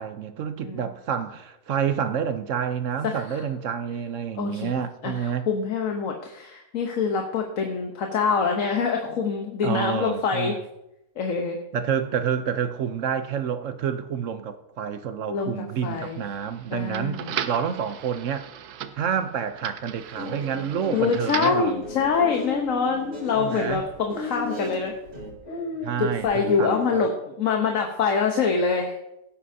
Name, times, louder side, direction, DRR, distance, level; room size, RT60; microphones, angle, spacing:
voice 1, 0.0-5.5 9.6-10.6 11.7-18.4 19.0-21.8 23.4-23.8 25.8-27.0, right 8 dB, 60° right, 0.9 m, -28 dB
voice 2, 3.0-3.4 4.4-4.8 5.0-10.5 11.2-11.6 15.3-16.2 16.7-17.3 20.9-24.9 26.0-27.1 27.4-28.9, left 5 dB, 60° left, 1.3 m, -25 dB
dvd player at home, 15.8-21.7, right 9 dB, 85° right, 1.2 m, -37 dB
Guitar, 20.0-25.3, equal, 45° right, 2.5 m, -38 dB
sound 1, 21.8-26.8, left 4 dB, 80° left, 5.6 m, -36 dB
17.0 x 8.5 x 2.7 m
omnidirectional pair, 1.6 m